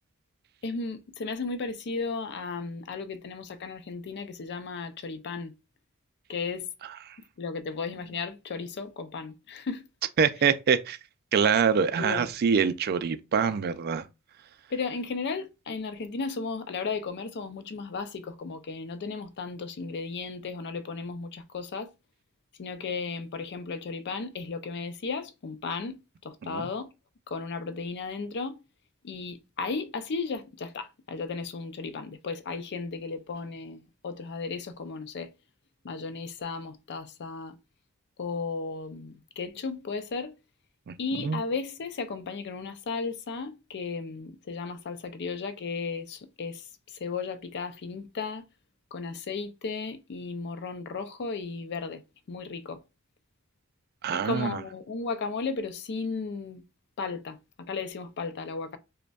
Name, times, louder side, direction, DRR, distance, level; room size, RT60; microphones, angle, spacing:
voice 1, 0.6-5.5 6.3-6.7 7.4-9.8 12.0-12.3 14.7-21.9 22.6-26.0 26.2-26.9 27.3-28.6 29.0-35.3 35.8-37.6 38.2-40.3 41.0-46.6 47.0-48.4 48.9-52.0 52.3-52.8 54.1-56.6 57.0-58.8, left 4 dB, 55° left, 0.4 m, -35 dB
voice 2, 10.2-11.0 11.3-14.0 26.4-26.7 40.9-41.4 54.0-54.6, right 6 dB, 45° right, 0.4 m, -25 dB
5.0 x 2.2 x 2.3 m
head